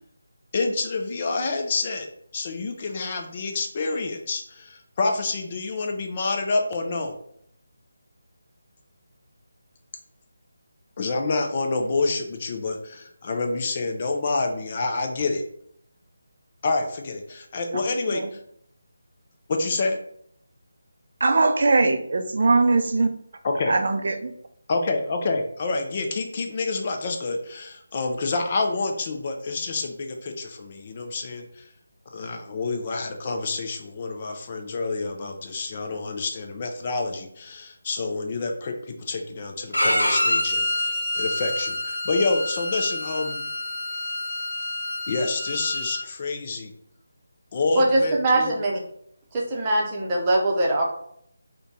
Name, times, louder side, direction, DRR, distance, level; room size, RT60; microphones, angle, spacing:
voice 1, 0.5-2.1 2.3-7.2 11.0-15.4 16.6-18.4 19.5-20.0 23.4-23.8 24.7-31.7 32.1-43.4 45.1-46.7 47.5-48.6, left 3 dB, 35° left, 3 dB, 0.5 m, -28 dB
voice 2, 21.2-23.1 23.7-24.3, right 3 dB, 55° right, 7 dB, 0.4 m, -21 dB
Bowed string instrument, 39.7-46.0, left 1 dB, 80° left, 0.9 m, -27 dB
voice 3, 47.8-48.8 49.3-50.8, right 1 dB, 20° right, -2 dB, 0.7 m, -22 dB
3.8 x 2.2 x 3.7 m, 0.68 s
figure-of-eight pair, 155°, 0 cm